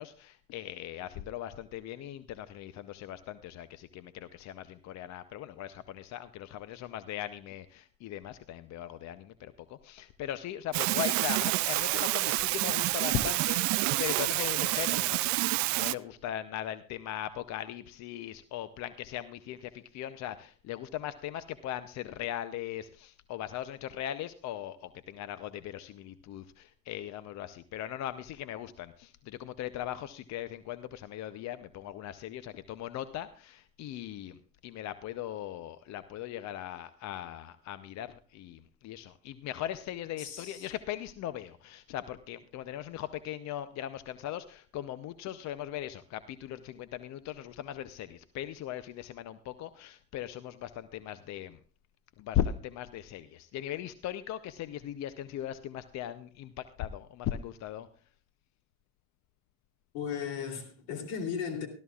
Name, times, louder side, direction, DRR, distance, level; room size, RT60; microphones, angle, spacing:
voice 1, 0.0-51.6 52.2-57.9, left 12 dB, 45° left, 0.6 m, -39 dB
sound 1, 10.7-15.9, right 21 dB, 50° right, 0.4 m, -28 dB
voice 2, 40.2-40.7 59.9-61.7, left 7 dB, 75° left, 3.1 m, -36 dB
18.5 x 13.0 x 2.4 m
supercardioid pair, 105°, 38 cm